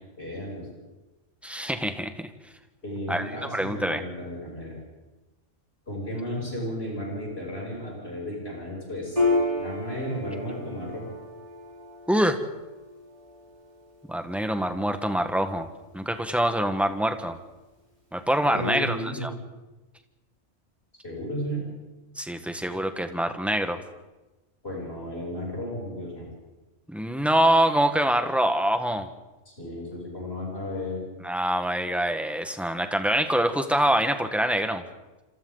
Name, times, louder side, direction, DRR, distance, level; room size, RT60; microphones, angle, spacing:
voice 1, 0.2-0.7 2.8-4.8 5.9-9.2 9.6-11.1 18.5-19.3 21.0-21.6 24.6-26.3 29.5-31.0, equal, 55° left, -3 dB, 8.2 m, -33 dB
voice 2, 1.4-2.3 3.1-4.0 12.1-12.4 14.1-15.7 15.9-17.4 18.1-19.3 22.2-23.8 26.9-29.1 31.2-34.8, right 1 dB, ahead, 7 dB, 1.5 m, -25 dB
Piano, 9.2-16.1, left 2 dB, 30° right, 7.4 m, -32 dB
27.5 x 27.0 x 4.0 m, 1.1 s
omnidirectional pair, 1.2 m